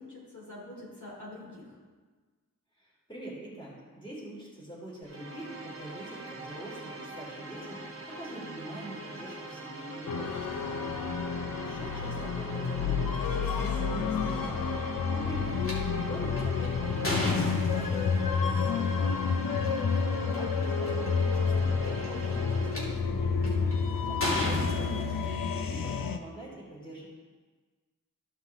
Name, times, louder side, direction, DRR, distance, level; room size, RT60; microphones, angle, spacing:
voice 1, 0.0-1.8, left 1 dB, 60° left, -5 dB, 2.8 m, -46 dB
voice 2, 2.8-10.7 11.6-14.7 15.1-15.6 15.9-19.2 20.3-23.7 24.0-25.2 25.5-27.0, right 1 dB, 15° left, -5 dB, 3.0 m, -43 dB
sound 1, 5.0-23.0, right 2 dB, 40° right, 1.2 m, -43 dB
sound 2, 10.1-26.2, left 5 dB, 85° left, 0.7 m, -29 dB
sound 3, 15.6-15.7 16.4-18.2 19.5-19.7 20.3-20.4 20.6-21.1 21.8-22.8 23.4-23.7 24.2-25.6, left 1 dB, 40° left, 2.5 m, -33 dB
14.0 x 5.7 x 3.6 m, 1.4 s
wide cardioid pair, 100°, 33 cm